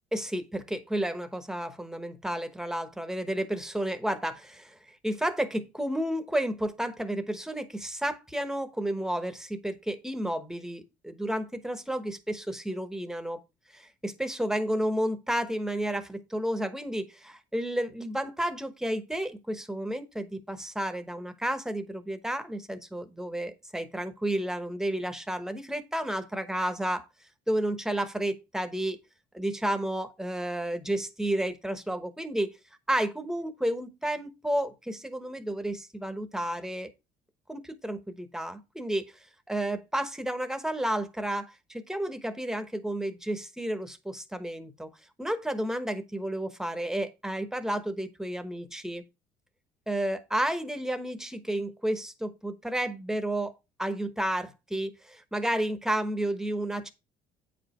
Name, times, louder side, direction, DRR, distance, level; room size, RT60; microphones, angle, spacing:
voice 1, 0.1-13.4 13.7-27.1 27.5-29.0 29.3-32.6 32.9-36.9 37.5-39.1 39.5-44.9 45.2-49.0 49.9-53.5 53.8-56.9, right 1 dB, 5° right, 1.1 m, -31 dB
8.7 x 5.0 x 4.3 m
cardioid pair, 110°, 17 cm